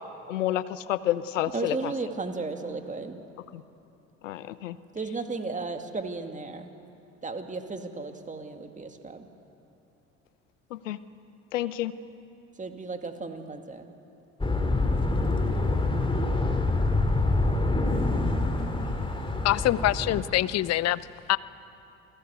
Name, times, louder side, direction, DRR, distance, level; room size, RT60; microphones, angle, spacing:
voice 1, 0.3-1.9 3.5-3.6 4.2-4.8 10.7-11.0 11.5-11.9, left 13 dB, 80° left, 15 dB, 0.9 m, -29 dB
voice 2, 1.5-3.2 4.9-6.7 7.2-9.3 12.6-13.9, right 3 dB, 20° right, 6 dB, 2.3 m, -34 dB
sound 1, 14.4-20.2, left 2 dB, 15° left, 2.9 m, -26 dB
voice 3, 19.4-21.0 21.3-21.4, left 14 dB, 45° left, 18 dB, 0.7 m, -24 dB
28.0 x 17.5 x 8.3 m, 2.8 s
figure-of-eight pair, 60°, 38 cm